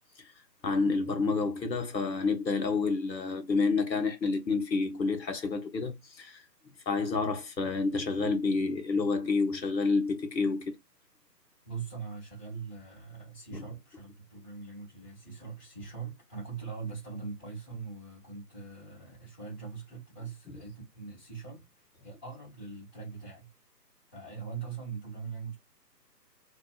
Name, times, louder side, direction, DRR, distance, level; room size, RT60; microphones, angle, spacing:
voice 1, 0.6-6.4 6.9-10.7 13.5-13.6 20.5-20.6, left 4 dB, 90° left, 1.0 m, -29 dB
voice 2, 11.6-23.5 24.1-25.6, right 5 dB, 5° left, 0.9 m, -42 dB
2.8 x 2.3 x 2.3 m
figure-of-eight pair, 150°, 50 cm